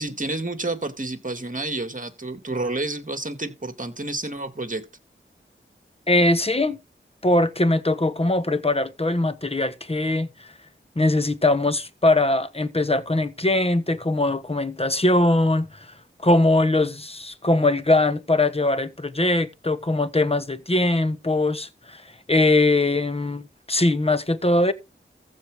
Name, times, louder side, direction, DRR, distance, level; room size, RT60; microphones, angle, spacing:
voice 1, 0.0-4.8, right 2 dB, 40° right, 2.4 m, -29 dB
voice 2, 6.1-6.8 7.2-10.3 11.0-15.7 16.2-22.0 22.3-24.7, left 2 dB, 30° left, 1.3 m, -21 dB
15.0 x 5.0 x 3.6 m
wide cardioid pair, 45°, 21 cm